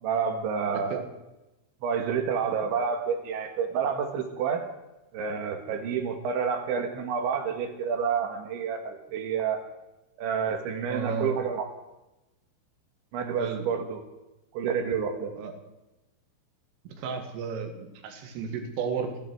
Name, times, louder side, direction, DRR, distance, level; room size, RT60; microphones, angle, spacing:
voice 1, 0.0-1.0 1.8-4.6 5.1-9.6 10.2-11.7 13.1-14.0 14.5-15.3, right 6 dB, 75° right, 5 dB, 3.9 m, -29 dB
voice 2, 0.7-1.0 2.6-2.7 10.9-11.4 13.4-13.7 15.4-15.5 16.9-19.2, right 5 dB, 90° right, 5 dB, 4.5 m, -33 dB
27.0 x 11.0 x 4.7 m, 0.99 s
omnidirectional pair, 5.6 m